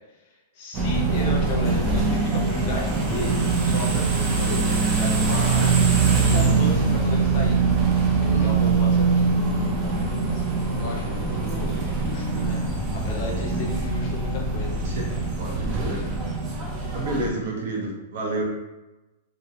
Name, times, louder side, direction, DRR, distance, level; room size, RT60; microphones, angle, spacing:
voice 1, 0.5-5.7 6.2-7.6 8.2-9.4 9.8-12.6 12.9-14.8, left 2 dB, 40° left, -1 dB, 0.5 m, -34 dB
sound 1, 0.7-17.3, right 4 dB, 25° right, 0.3 m, -23 dB
voice 2, 8.3-8.6 13.4-13.7 14.8-15.1 15.4-16.1 16.9-18.4, right 2 dB, 60° right, -1 dB, 0.6 m, -30 dB
2.4 x 2.1 x 2.7 m, 1.1 s
supercardioid pair, 170°, 0 cm